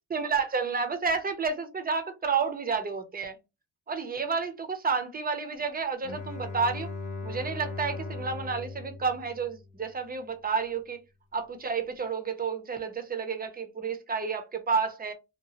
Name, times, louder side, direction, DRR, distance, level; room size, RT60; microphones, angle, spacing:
voice 1, 0.1-3.4 3.9-6.9 7.2-11.0 11.3-15.1, right 5 dB, 20° right, 0.5 m, -30 dB
Bowed string instrument, 6.0-10.0, left 3 dB, 20° left, 0.7 m, -39 dB
2.8 x 2.3 x 2.8 m
cardioid pair, 135°, 47 cm